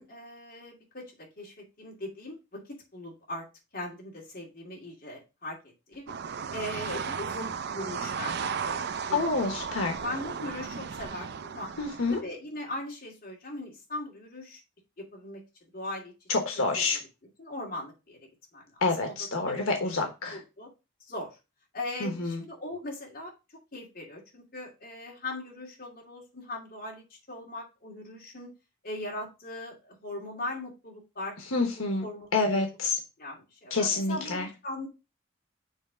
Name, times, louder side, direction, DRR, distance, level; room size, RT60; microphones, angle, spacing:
voice 1, 0.0-3.5 3.7-6.1 6.5-9.3 9.9-11.7 12.1-14.6 15.0-15.4 15.7-16.1 16.5-17.0 17.4-18.2 18.5-18.7 19.0-19.6 20.0-20.7 21.0-21.4 21.7-28.5 28.8-32.3 32.6-32.7 33.2-34.9, left 1 dB, 45° left, -2 dB, 2.5 m, -40 dB
sound 1, 6.1-12.2, right 6 dB, 50° right, 0.5 m, -35 dB
voice 2, 9.1-9.9 11.8-12.2 16.3-17.0 18.8-20.4 22.0-22.4 31.5-32.0 32.3-33.0 33.7-34.5, left 3 dB, 80° left, 4 dB, 1.1 m, -27 dB
7.3 x 3.3 x 5.0 m, 0.27 s
head